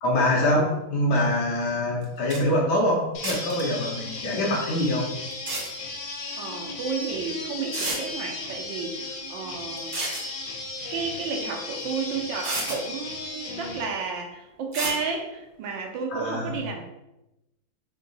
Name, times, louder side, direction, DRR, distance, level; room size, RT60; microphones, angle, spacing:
voice 1, 0.0-5.0 16.1-16.5, left 1 dB, 65° left, -3 dB, 1.3 m, -24 dB
sound 1, 2.0-2.1 2.3-2.4 3.2-3.6 5.3-5.7 7.0-7.1 7.7-8.0 9.8-10.3 11.8-11.9 12.4-12.8 14.7-15.0, right 2 dB, 60° right, 0.5 m, -30 dB
sound 2, 3.1-13.8, left 3 dB, 80° left, 1.6 m, -36 dB
voice 2, 6.4-10.1 10.9-16.8, right 5 dB, 75° right, 3 dB, 1.3 m, -32 dB
3.8 x 2.7 x 3.9 m, 0.92 s
omnidirectional pair, 2.2 m